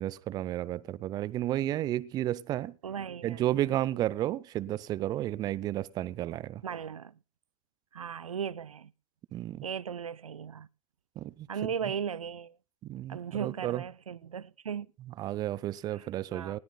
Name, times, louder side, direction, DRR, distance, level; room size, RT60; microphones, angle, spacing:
voice 1, 0.0-2.8 3.2-6.6 9.3-9.6 11.2-11.5 11.8-11.9 12.8-13.8 15.1-16.6, right 13 dB, 20° right, 0.6 m, -32 dB
voice 2, 2.8-3.4 6.6-7.1 7.9-8.9 9.6-10.7 11.5-12.6 13.1-14.9 15.9-16.6, right 7 dB, 75° right, 0.5 m, -37 dB
19.5 x 18.0 x 2.2 m
figure-of-eight pair, 105°, 18 cm